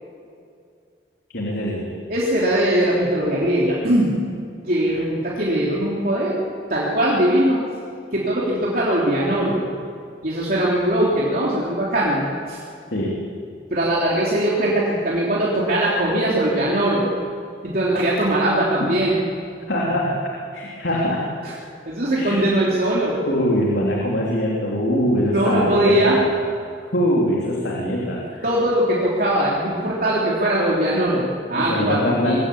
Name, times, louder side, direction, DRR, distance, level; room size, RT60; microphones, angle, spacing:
voice 1, 1.3-1.9 12.9-13.2 18.8-18.9 19.7-20.2 20.5-21.2 22.1-22.4 23.3-26.2 26.9-28.4 31.5-32.4, equal, 85° left, -3 dB, 3.2 m, -22 dB
voice 2, 2.1-4.1 4.6-6.4 6.7-7.6 8.1-9.6 10.2-12.6 13.7-17.1 17.6-19.2 21.4-21.5 21.9-23.2 25.3-26.2 28.4-32.4, right 1 dB, 55° right, -6 dB, 3.4 m, -20 dB
22.5 x 16.5 x 8.6 m, 2.3 s
head